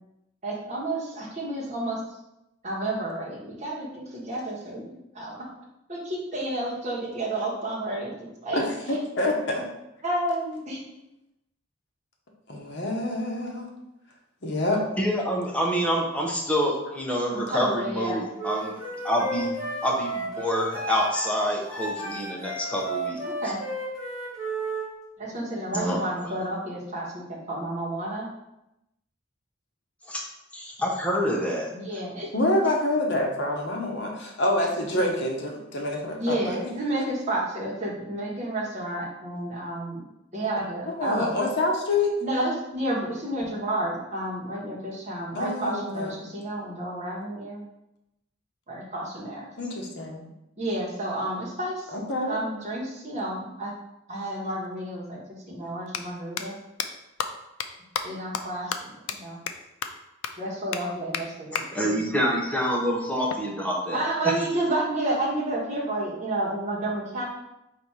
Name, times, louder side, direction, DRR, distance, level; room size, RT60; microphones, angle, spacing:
voice 1, 0.4-2.0 2.6-5.3 5.9-8.6 10.0-10.8 17.3-18.2 23.2-23.6 25.2-28.3 31.7-32.3 36.2-40.0 40.3-41.3 42.2-47.6 48.7-49.5 50.6-52.0 52.3-53.7 54.1-55.2 55.5-56.6 58.0-59.4 60.4-61.9 63.9-67.2, right 1 dB, 35° right, -5 dB, 1.3 m, -30 dB
voice 2, 8.5-9.7 12.5-13.7 14.4-14.8 32.3-36.5 40.9-42.1 45.3-46.1 49.6-50.2 51.9-52.4, left 2 dB, 60° left, 0 dB, 0.9 m, -27 dB
voice 3, 15.0-18.7 19.0-19.5 19.8-23.2 25.7-26.0 30.1-30.2 30.5-31.7 61.7-64.0, equal, 5° left, -1 dB, 0.7 m, -26 dB
Wind instrument woodwind instrument, 18.4-24.9, right 2 dB, 15° right, 1.3 m, -33 dB
sound 1, 54.6-54.7 55.8-56.0 56.4-56.5 56.8-56.9 57.2-57.3 57.6-57.7 57.9-58.0 58.3-58.4 58.7-58.8 59.1-59.2 59.5-59.6 59.8-59.9 60.2-60.3 60.7-60.8 61.1-61.2 61.6-61.7 63.3-64.3, left 8 dB, 85° left, 0.4 m, -31 dB
4.2 x 2.7 x 4.7 m, 0.89 s
head